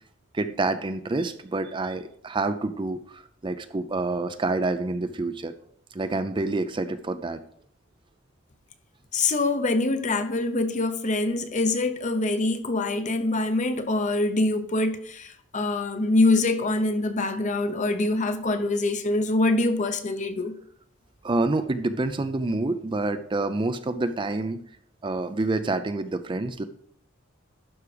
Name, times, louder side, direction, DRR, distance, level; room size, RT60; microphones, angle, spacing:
voice 1, 0.3-5.5 5.9-7.4 21.2-24.6 25.0-26.6, right 2 dB, 25° right, 0.5 m, -27 dB
voice 2, 9.1-20.6, left 2 dB, 35° left, 0.8 m, -24 dB
11.5 x 4.9 x 4.9 m
head